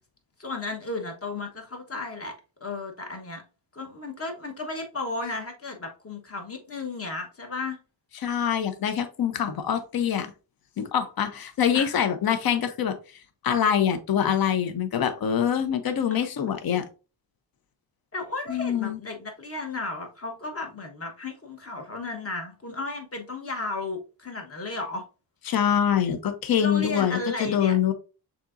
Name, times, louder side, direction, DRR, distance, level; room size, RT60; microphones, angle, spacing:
voice 1, 0.4-2.3 2.6-3.4 3.7-7.8 11.7-11.9 18.1-25.0 26.6-27.8, left 3 dB, 35° left, 1.2 m, -34 dB
voice 2, 8.2-10.3 10.8-13.0 13.4-16.9 18.5-19.0 25.5-27.9, left 8 dB, 55° left, 0.7 m, -24 dB
6.6 x 2.9 x 2.5 m
wide cardioid pair, 100°, 42 cm